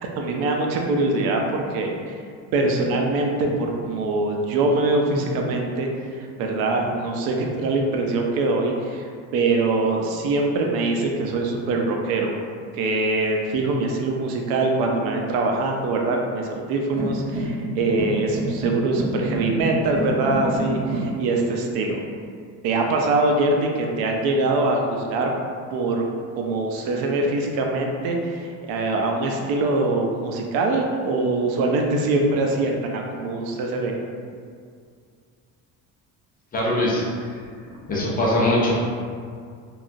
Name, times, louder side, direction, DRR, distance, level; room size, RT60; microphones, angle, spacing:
voice 1, 0.0-2.1 2.5-12.4 12.7-22.0 22.6-25.3 25.7-26.0 26.4-33.9, right 2 dB, 85° right, 1 dB, 0.5 m, -23 dB
sound 1, 17.0-21.1, right 1 dB, 60° right, 1.4 m, -28 dB
voice 2, 36.5-37.3 37.9-38.7, left 1 dB, 25° left, -5 dB, 0.4 m, -22 dB
2.8 x 2.3 x 2.5 m, 2.2 s
cardioid pair, 150°, 36 cm